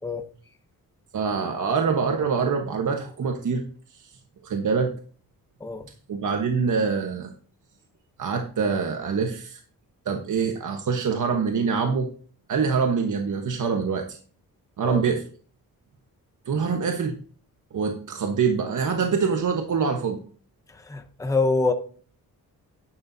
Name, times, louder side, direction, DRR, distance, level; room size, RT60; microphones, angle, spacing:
voice 1, 1.1-3.6 3.9-4.1 4.4-4.9 6.1-7.3 8.2-9.6 10.0-12.1 12.5-14.2 14.8-15.2 16.5-17.2 17.7-20.2, right 5 dB, 55° right, 4 dB, 1.3 m, -25 dB
voice 2, 20.9-21.7, left 3 dB, 10° left, 7 dB, 0.8 m, -24 dB
11.5 x 9.9 x 2.8 m, 0.43 s
wide cardioid pair, 140°, 35 cm